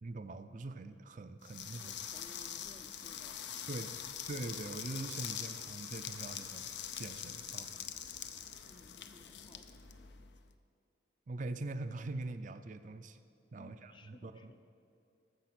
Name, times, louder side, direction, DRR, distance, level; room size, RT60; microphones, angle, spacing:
voice 1, 0.0-2.0 3.7-4.0 4.3-7.9 11.3-13.2 13.5-14.5, right 2 dB, 45° right, 9 dB, 0.4 m, -43 dB
sound 1, 1.4-10.4, left 9 dB, 70° left, 0.6 m, -44 dB
voice 2, 1.7-3.7 8.6-9.8 13.6-14.6, left 2 dB, 25° left, 7 dB, 0.6 m, -58 dB
13.5 x 6.9 x 5.9 m, 2.6 s
head